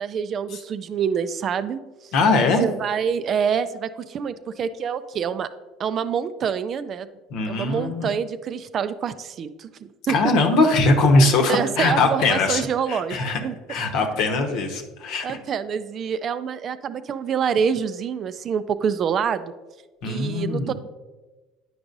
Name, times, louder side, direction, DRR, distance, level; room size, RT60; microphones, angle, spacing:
voice 1, 0.0-1.8 2.6-5.5 5.8-7.1 7.5-9.7 10.1-10.3 11.2-13.5 14.5-14.6 15.2-19.5 20.1-20.7, right 7 dB, 45° right, 13 dB, 0.3 m, -26 dB
voice 2, 2.1-2.6 7.3-8.1 10.1-12.6 12.9-13.4 13.7-15.4 20.0-20.7, left 3 dB, 65° left, 4 dB, 0.9 m, -21 dB
9.4 x 4.7 x 2.6 m, 1.2 s
hypercardioid pair, 80°, 0 cm